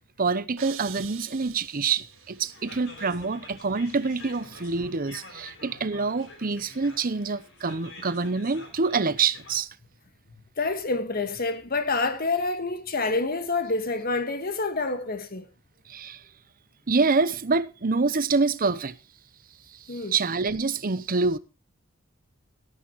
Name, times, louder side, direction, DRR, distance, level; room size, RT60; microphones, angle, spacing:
voice 1, 0.2-9.7 15.9-16.2 16.9-19.0 19.7-21.4, right 4 dB, 45° right, 0.8 m, -26 dB
sound 1, 0.6-2.7, right 10 dB, 80° right, 2.2 m, -44 dB
sound 2, 2.1-9.6, left 3 dB, 65° left, 4.3 m, -47 dB
voice 2, 10.6-15.5 19.9-20.1, left 3 dB, 50° left, 1.6 m, -27 dB
17.5 x 13.0 x 3.1 m
head